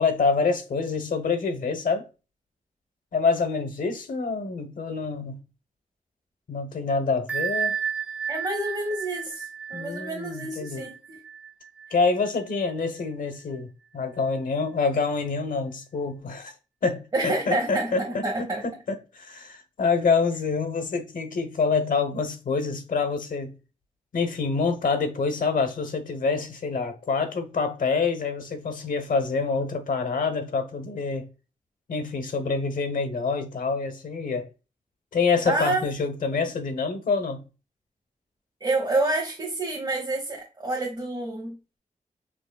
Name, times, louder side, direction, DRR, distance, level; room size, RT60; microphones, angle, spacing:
voice 1, 0.0-2.0 3.1-5.4 6.5-7.8 9.7-10.8 11.9-16.5 16.8-23.5 24.1-31.3 31.9-34.5 35.1-37.4, left 4 dB, 85° left, 0.9 m, -26 dB
Bell, 7.3-12.7, right 7 dB, 10° right, 0.5 m, -33 dB
voice 2, 8.3-11.2 17.1-18.6 35.5-35.9 38.6-41.6, right 2 dB, 30° right, 1.2 m, -28 dB
6.2 x 2.9 x 2.2 m
wide cardioid pair, 115°, 14 cm